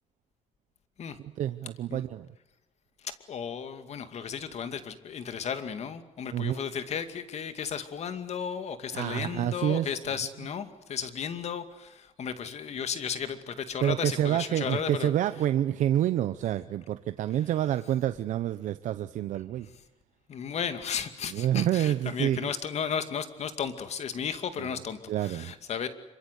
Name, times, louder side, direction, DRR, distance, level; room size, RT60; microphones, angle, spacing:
voice 1, 1.4-2.3 6.3-6.6 8.9-9.9 13.8-19.7 21.3-22.5 25.1-25.5, right 11 dB, 85° right, 11 dB, 0.9 m, -28 dB
voice 2, 3.0-15.1 20.3-25.9, left 7 dB, 60° left, 10 dB, 2.4 m, -34 dB
26.0 x 24.5 x 8.3 m, 0.98 s
cardioid pair, 110°, 13 cm